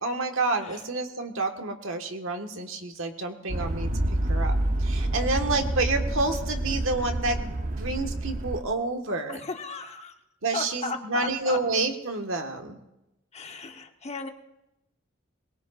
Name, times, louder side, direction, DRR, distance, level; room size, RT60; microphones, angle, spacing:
voice 1, 0.0-3.9 4.3-7.5 7.8-9.4 10.4-12.8, right 3 dB, 75° right, 4 dB, 1.5 m, -29 dB
sound 1, 3.5-8.6, right 1 dB, 40° right, 0.8 m, -28 dB
voice 2, 9.3-10.1 10.5-11.6 13.3-14.3, left 4 dB, 35° left, 5 dB, 1.0 m, -36 dB
22.0 x 21.0 x 2.5 m, 0.93 s
head